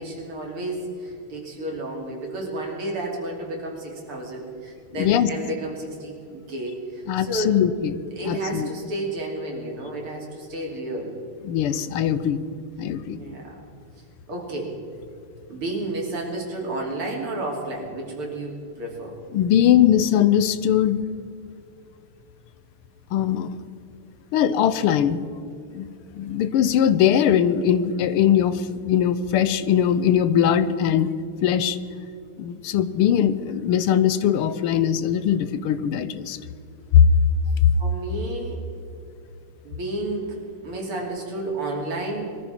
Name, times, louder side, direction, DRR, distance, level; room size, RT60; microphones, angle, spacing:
voice 1, 0.0-7.5 8.2-11.2 13.1-13.6 14.3-14.7 15.5-19.2 37.8-38.7 39.6-42.4, right 2 dB, 75° right, -1 dB, 3.9 m, -31 dB
voice 2, 5.0-5.3 7.1-8.0 8.3-8.7 11.4-12.4 12.8-13.2 19.3-21.0 23.1-23.6 24.3-25.9 26.2-31.1 31.4-31.8 32.4-36.4 36.9-37.1 37.6-37.7, left 9 dB, 85° left, 14 dB, 1.7 m, -20 dB
22.0 x 14.0 x 4.5 m, 2.5 s
omnidirectional pair, 2.4 m